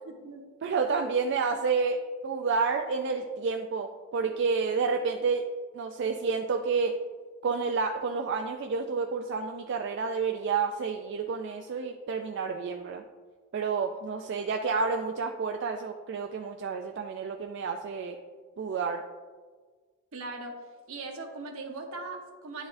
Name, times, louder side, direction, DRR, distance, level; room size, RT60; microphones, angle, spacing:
voice 1, 0.1-0.4 0.8-0.9 20.1-20.6 20.9-22.7, right 3 dB, 75° right, 3 dB, 0.9 m, -39 dB
voice 2, 0.6-5.5 5.7-6.9 7.4-13.0 13.5-18.2 18.6-19.0, right 5 dB, 55° right, 4 dB, 0.3 m, -29 dB
9.9 x 4.1 x 2.5 m, 1.5 s
head